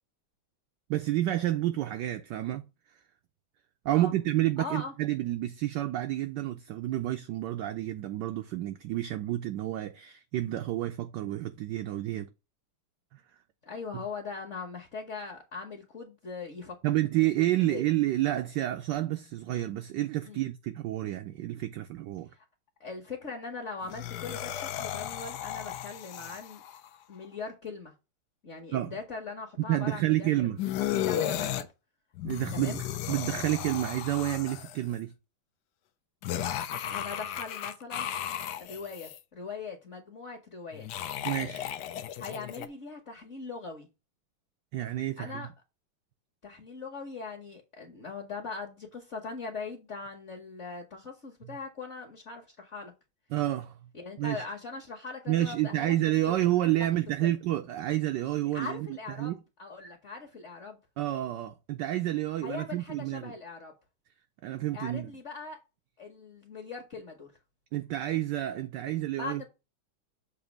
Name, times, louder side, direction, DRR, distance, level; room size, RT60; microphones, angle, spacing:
voice 1, 0.9-2.6 3.8-12.3 16.8-22.3 28.7-28.9 29.6-30.6 32.2-35.1 41.2-41.7 44.7-45.4 53.3-53.7 54.2-54.4 55.3-59.4 61.0-63.3 64.4-65.1 67.7-69.4, right 14 dB, 70° right, 1.1 m, -29 dB
voice 2, 4.6-4.9 13.6-16.8 17.6-17.8 20.2-20.5 22.3-22.4 22.8-26.6 27.1-27.9 28.4-31.7 32.5-32.8 36.9-38.1 38.6-41.1 42.2-43.9 45.2-45.5 46.4-52.9 53.9-55.9 56.3-56.6 57.2-57.3 58.5-59.3 59.6-60.8 62.4-63.7 64.7-65.6 66.0-67.3 69.2-69.5, left 4 dB, 40° left, 1.2 m, -40 dB
sound 1, 23.8-26.9 30.6-31.6 32.1-34.9 36.2-39.2 40.7-42.7, left 11 dB, 70° left, 1.0 m, -35 dB
6.9 x 2.7 x 5.2 m
omnidirectional pair, 2.3 m